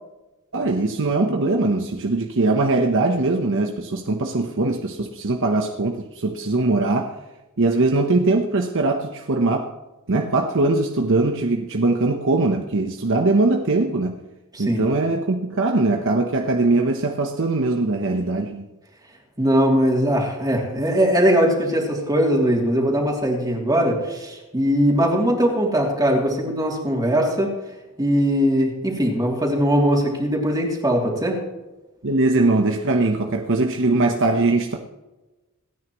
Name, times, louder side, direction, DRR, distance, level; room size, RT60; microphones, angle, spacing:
voice 1, 0.5-7.2 7.6-9.7 10.1-14.2 14.6-18.6 32.0-34.8, right 2 dB, 60° right, 1.0 m, -21 dB
voice 2, 19.4-27.5 28.0-31.4, equal, 20° right, 2.9 m, -20 dB
27.0 x 9.5 x 3.1 m
head